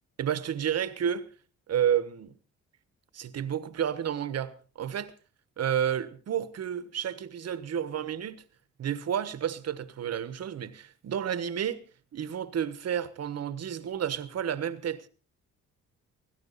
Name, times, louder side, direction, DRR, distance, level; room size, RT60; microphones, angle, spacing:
voice 1, 0.2-1.3 1.7-2.3 3.1-5.1 5.6-8.4 8.8-11.8 12.1-15.1, right 9 dB, 55° right, 1.3 m, -31 dB
18.0 x 16.5 x 4.1 m
cardioid pair, 90°, 30 cm